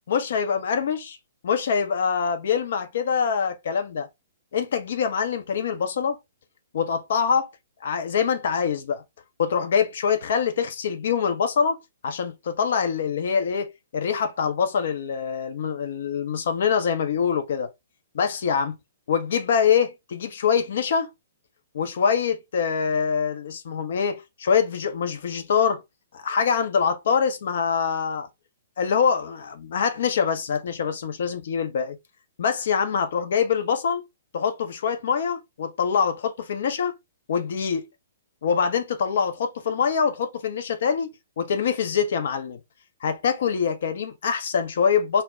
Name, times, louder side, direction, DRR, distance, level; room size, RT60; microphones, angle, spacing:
voice 1, 0.1-1.2 1.4-4.1 4.5-6.2 6.7-7.5 7.8-9.0 9.4-11.8 12.0-17.7 18.1-18.8 19.1-21.1 21.7-25.8 26.1-28.3 28.8-32.0 32.4-34.0 34.3-36.9 37.3-37.8 38.4-42.6 43.0-45.2, left 6 dB, 60° left, 0.5 m, -24 dB
2.1 x 2.1 x 3.4 m
figure-of-eight pair, 120°, 0 cm